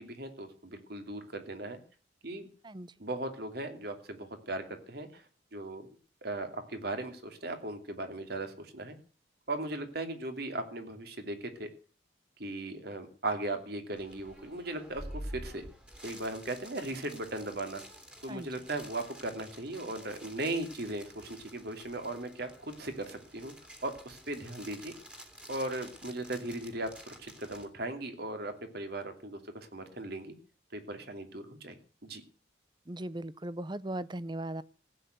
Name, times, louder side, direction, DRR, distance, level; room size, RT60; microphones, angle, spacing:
voice 1, 0.0-1.8 2.2-2.5 3.0-5.9 6.2-9.0 9.5-11.7 12.4-15.6 16.0-17.8 18.2-23.5 23.8-24.9 25.5-30.3 30.7-31.8 32.0-32.2, right 2 dB, 55° right, 2.7 m, -38 dB
sound 1, 14.0-27.7, equal, 5° right, 2.5 m, -49 dB
voice 2, 32.9-34.6, right 1 dB, 25° right, 0.6 m, -38 dB
16.0 x 9.2 x 7.9 m
head